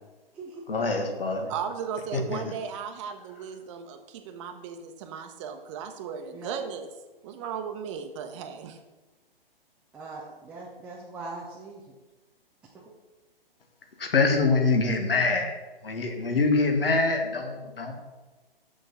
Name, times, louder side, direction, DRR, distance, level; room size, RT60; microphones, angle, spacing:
voice 1, 0.7-1.5 2.1-2.4 14.0-15.5 15.8-17.9, left 3 dB, 70° left, 4 dB, 1.7 m, -24 dB
voice 2, 1.5-6.9 7.2-8.8, right 7 dB, 30° right, 6 dB, 0.9 m, -36 dB
voice 3, 9.9-11.8 12.7-12.8, right 3 dB, 5° right, -4 dB, 0.4 m, -41 dB
7.1 x 6.6 x 5.6 m, 1.2 s
figure-of-eight pair, 125°, 29 cm